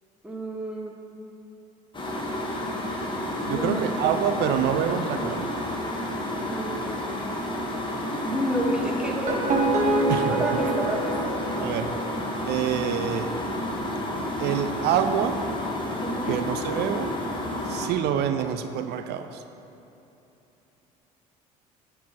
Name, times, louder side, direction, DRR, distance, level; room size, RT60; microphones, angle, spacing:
voice 1, 0.2-0.9 3.5-4.2 6.2-7.0 8.2-9.4 10.3-11.3 16.0-16.3, equal, 5° right, -1 dB, 1.7 m, -30 dB
sound 1, 1.9-17.9, left 1 dB, 25° left, 1.7 m, -30 dB
voice 2, 3.5-5.5 10.1-10.3 11.6-12.0 12.4-13.4 14.4-15.4 16.3-17.2 17.6-19.4, right 9 dB, 55° right, 9 dB, 0.5 m, -26 dB
sound 2, 9.0-12.2, right 2 dB, 35° right, 1.7 m, -26 dB
9.4 x 4.6 x 5.8 m, 3.0 s
hypercardioid pair, 60°, 20 cm